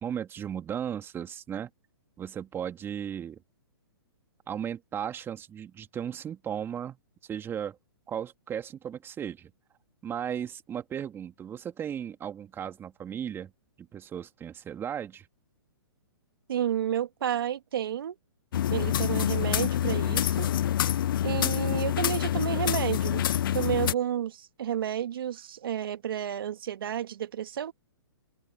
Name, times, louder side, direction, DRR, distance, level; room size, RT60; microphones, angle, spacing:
voice 1, 0.0-1.7 2.2-3.4 4.5-7.0 7.2-7.8 8.1-9.5 10.0-13.5 13.8-15.3, right 9 dB, 15° right, 2.8 m, -36 dB
voice 2, 16.5-18.2 18.7-20.5 21.2-23.3 23.5-27.7, right 10 dB, 65° right, 2.1 m, -31 dB
sound 1, 18.5-23.9, left 11 dB, 60° left, 0.4 m, -26 dB
hypercardioid pair, 130°, 13 cm